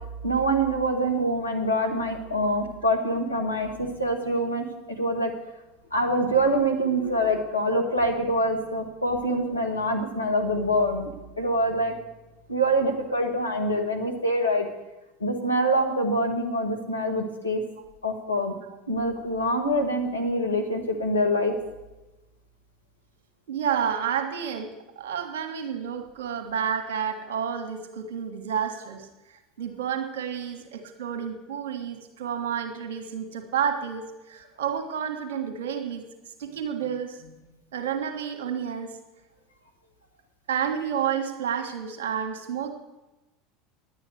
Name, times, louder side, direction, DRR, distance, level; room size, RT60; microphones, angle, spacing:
voice 1, 0.2-5.3 5.9-11.1 11.4-11.9 12.5-14.7 15.2-17.6 18.0-18.5 18.9-21.6, equal, 85° left, 3 dB, 1.5 m, -25 dB
voice 2, 23.5-24.7 24.9-29.1 29.6-36.0 36.4-37.2 37.7-38.9 40.5-42.7, right 8 dB, 65° right, 5 dB, 1.6 m, -30 dB
10.5 x 8.9 x 6.6 m, 1.0 s
figure-of-eight pair, 75°, 0 cm